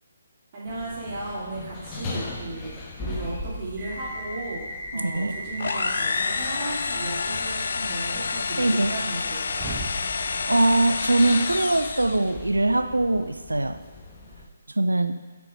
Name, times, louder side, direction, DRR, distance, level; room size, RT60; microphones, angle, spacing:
voice 1, 0.5-9.7, right 2 dB, 40° right, -9 dB, 2.6 m, -35 dB
sound 1, 0.7-14.5, left 2 dB, 20° left, 1.4 m, -40 dB
sound 2, 3.8-12.1, equal, 15° right, 1.6 m, -39 dB
voice 2, 4.9-5.4 8.6-8.9 10.5-13.8 14.8-15.1, right 2 dB, 80° right, 9 dB, 0.7 m, -22 dB
sound 3, 5.6-12.3, left 4 dB, 60° left, 0.5 m, -28 dB
8.3 x 5.9 x 6.4 m, 1.2 s
figure-of-eight pair, 140°, 0 cm